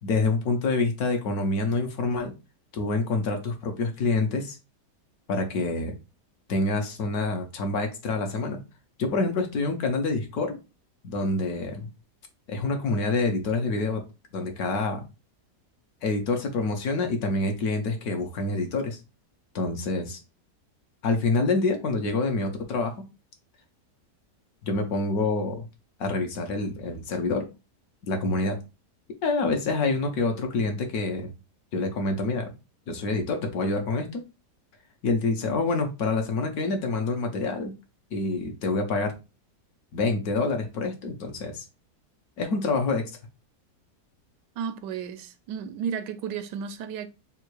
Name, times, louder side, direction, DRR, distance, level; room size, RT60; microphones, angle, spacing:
voice 1, 0.0-2.3 2.7-4.6 5.3-5.9 6.5-8.6 9.0-10.6 11.0-11.9 12.5-14.0 14.3-15.0 16.0-19.0 19.5-20.2 21.0-22.9 24.6-25.7 26.0-27.5 28.1-28.6 29.2-31.3 31.7-32.5 32.9-34.2 35.0-37.7 38.1-39.1 39.9-41.6 42.4-43.0, left 3 dB, 65° left, 1.3 m, -27 dB
voice 2, 44.6-47.1, right 7 dB, 85° right, 1.2 m, -33 dB
3.6 x 2.5 x 4.5 m
omnidirectional pair, 1.8 m